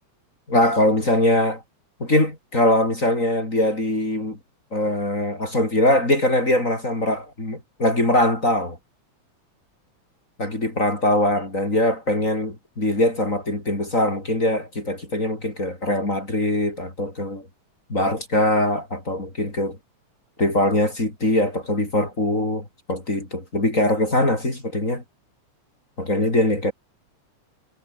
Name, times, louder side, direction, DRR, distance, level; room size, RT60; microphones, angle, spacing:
voice 1, 0.5-1.6 2.0-4.4 4.7-8.8 10.4-17.4 17.9-19.8 20.4-25.0 26.0-26.7, left 1 dB, 25° left, 5.6 m, -22 dB
omnidirectional pair, 3.4 m